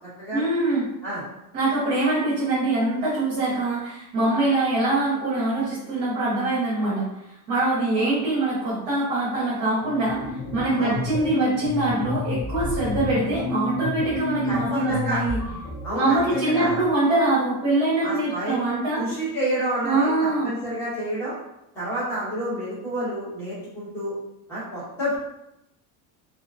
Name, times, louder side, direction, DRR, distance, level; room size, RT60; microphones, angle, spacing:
voice 1, 0.3-0.8 1.5-7.1 7.5-10.2 10.5-15.4 15.9-19.0 19.8-20.5, right 2 dB, 35° right, -9 dB, 0.7 m, -23 dB
sound 1, 9.8-16.9, left 2 dB, 50° left, 0.7 m, -30 dB
voice 2, 14.5-15.2 15.8-16.8 18.0-18.6 19.0-21.4 21.7-24.1 24.5-25.2, right 1 dB, 5° left, -10 dB, 0.5 m, -29 dB
2.3 x 2.2 x 2.4 m, 0.86 s
cardioid pair, 175°, 47 cm